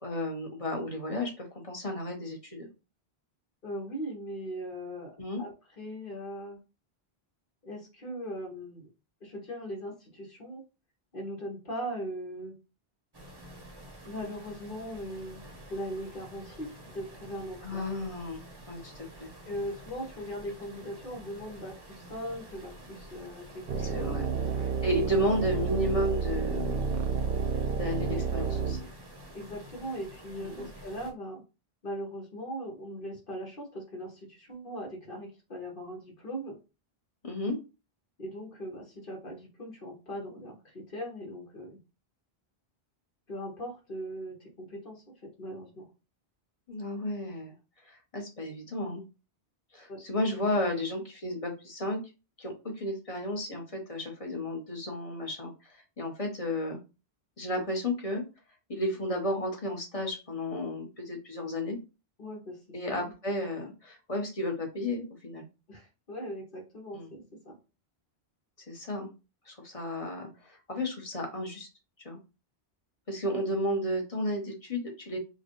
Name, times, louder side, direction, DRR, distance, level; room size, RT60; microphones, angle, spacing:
voice 1, 0.0-2.7 5.2-5.4 17.6-18.4 18.7-19.3 23.8-24.2 24.5-27.0 27.7-28.9 30.4-30.7 37.2-37.6 46.7-47.5 47.8-49.0 49.7-52.0 52.4-56.8 57.4-58.2 58.7-61.8 62.7-65.4 66.9-67.1 68.7-69.1 69.5-71.7 72.0-72.2 73.1-75.2, left 1 dB, 35° left, 1 dB, 1.1 m, -33 dB
voice 2, 3.6-6.6 7.6-8.9 9.2-10.6 11.1-12.5 14.0-15.4 15.7-17.8 19.4-24.7 29.3-31.4 31.8-36.6 38.2-41.8 43.3-45.9 49.9-50.0 62.2-63.1 65.7-67.6, equal, 55° left, 0 dB, 1.6 m, -39 dB
sound 1, 13.1-31.1, right 1 dB, 25° right, 0.8 m, -49 dB
sound 2, 23.7-28.8, right 5 dB, 60° right, 0.7 m, -30 dB
5.4 x 2.3 x 3.0 m, 0.29 s
omnidirectional pair, 1.1 m